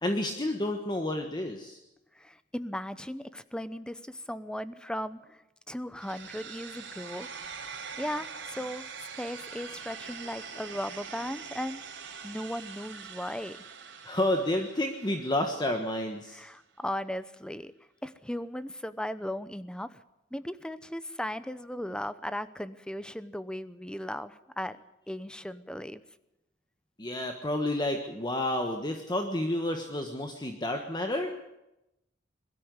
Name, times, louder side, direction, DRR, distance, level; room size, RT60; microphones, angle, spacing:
voice 1, 0.0-1.8 14.0-16.4 27.0-31.3, left 1 dB, 25° left, 4 dB, 1.4 m, -30 dB
voice 2, 2.1-7.3 8.0-11.8 12.2-13.6 16.3-17.7 18.0-20.0 20.3-24.8 25.1-26.0, equal, 5° left, 14 dB, 0.8 m, -37 dB
sound 1, 6.0-16.0, right 6 dB, 70° right, 4.3 m, -44 dB
21.5 x 13.0 x 9.7 m, 0.92 s
head